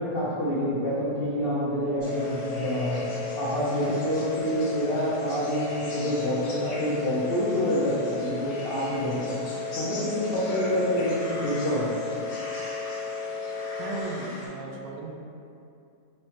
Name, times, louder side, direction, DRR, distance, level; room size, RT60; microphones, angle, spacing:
voice 1, 0.0-3.0 3.4-9.4 9.7-11.9, equal, 85° left, -8 dB, 0.5 m, -27 dB
sound 1, 2.0-14.5, left 1 dB, 65° left, 1.2 m, -42 dB
sound 2, 2.0-14.0, left 4 dB, 55° right, 1.0 m, -34 dB
voice 2, 13.8-15.1, right 2 dB, 85° right, -1 dB, 1.3 m, -35 dB
6.1 x 2.1 x 2.8 m, 2.6 s
omnidirectional pair, 1.8 m